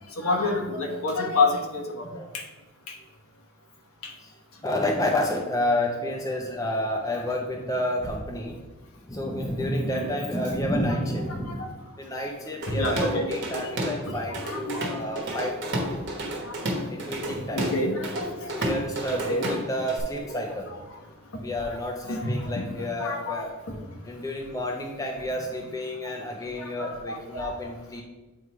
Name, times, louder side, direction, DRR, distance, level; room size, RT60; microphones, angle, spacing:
voice 1, 0.2-2.1 9.9-10.1 12.7-13.3 14.4-14.9 17.5-18.5 19.1-19.5 22.0-22.6 23.0-23.4 26.8-27.5, left 2 dB, 85° left, 1 dB, 1.3 m, -27 dB
voice 2, 4.6-8.6 9.0-11.6 12.0-16.0 16.9-17.7 18.5-20.8 21.4-23.5 24.0-28.0, left 1 dB, 15° left, 0 dB, 0.5 m, -30 dB
Drum kit / Drum, 12.6-14.0 14.3-20.0, right 1 dB, 55° right, 1.3 m, -31 dB
8.2 x 3.2 x 4.6 m, 1.2 s
head